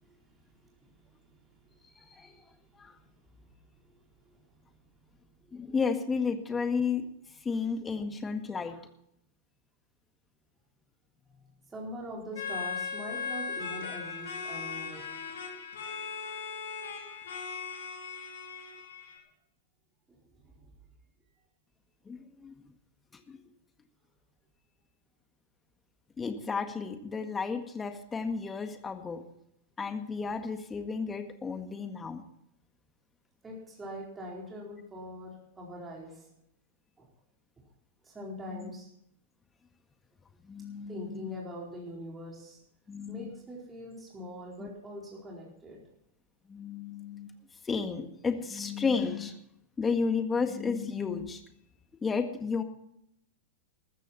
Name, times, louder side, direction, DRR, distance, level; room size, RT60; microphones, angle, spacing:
voice 1, 0.0-2.5 2.8-5.7 11.7-15.1 20.1-20.2 20.4-20.7 33.4-36.3 37.0-37.1 38.0-38.9 40.9-42.6 43.1-45.8, equal, 15° right, -3 dB, 4.3 m, -44 dB
voice 2, 2.0-2.3 2.8-3.0 5.5-7.0 7.4-8.8 22.1-22.6 23.3-23.4 26.2-29.2 29.8-32.2 38.5-38.7 40.4-41.3 42.9-43.3 44.6-44.7 46.5-47.3 47.6-49.3 49.8-51.4 52.0-52.6, left 5 dB, 15° left, 7 dB, 1.8 m, -32 dB
sound 1, 12.3-19.2, left 6 dB, 65° left, 3.9 m, -38 dB
14.0 x 14.0 x 4.3 m, 0.77 s
figure-of-eight pair, 100°, 0 cm